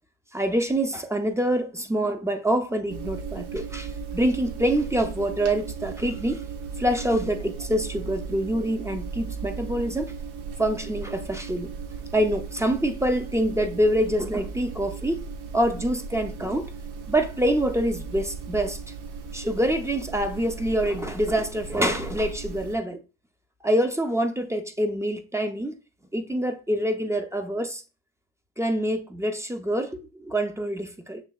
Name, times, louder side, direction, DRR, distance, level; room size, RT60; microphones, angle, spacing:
voice 1, 0.3-6.4 6.8-10.1 10.6-11.7 12.1-15.2 15.5-16.7 17.1-18.8 19.3-23.0 23.6-25.7 26.1-27.8 28.6-31.2, right 1 dB, 5° right, 0.6 m, -26 dB
sound 1, 2.9-22.8, right 5 dB, 65° right, 0.9 m, -36 dB
6.4 x 2.8 x 2.3 m
supercardioid pair, 80°, 42 cm